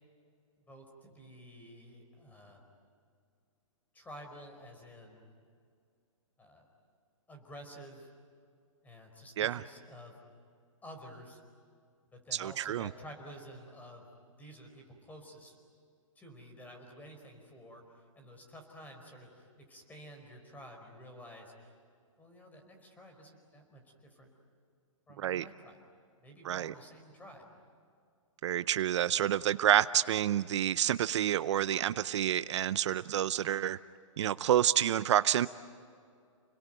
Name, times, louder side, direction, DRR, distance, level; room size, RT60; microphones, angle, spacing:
voice 1, 0.7-2.6 3.9-5.2 6.4-6.7 7.3-8.1 8.8-10.2 10.8-11.4 12.1-14.1 14.4-15.6 16.1-17.8 18.1-21.7 22.2-24.3 25.1-25.8 26.2-27.5, equal, 10° left, 4 dB, 4.8 m, -51 dB
voice 2, 12.3-12.9 25.2-25.4 26.4-26.7 28.4-33.8 34.2-35.5, right 11 dB, 60° right, 15 dB, 0.6 m, -28 dB
30.0 x 21.5 x 9.2 m, 2.3 s
hypercardioid pair, 145°, 17 cm